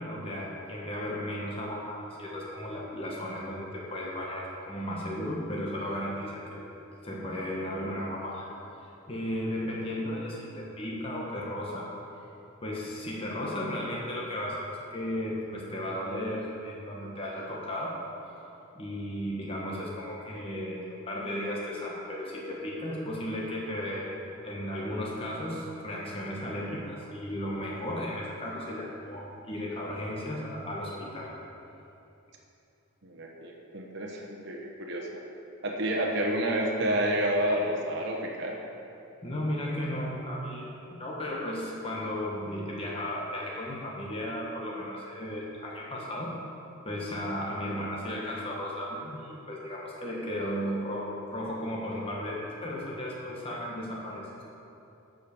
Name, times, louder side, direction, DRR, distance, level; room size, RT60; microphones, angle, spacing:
voice 1, 0.0-6.7 7.0-8.4 9.1-11.9 12.6-18.0 18.7-31.3 39.2-46.3 46.8-54.4, left 1 dB, 25° left, -4 dB, 1.3 m, -35 dB
voice 2, 33.0-35.2 35.6-38.5, right 1 dB, 55° right, -1 dB, 1.1 m, -29 dB
11.0 x 5.2 x 7.0 m, 2.9 s
head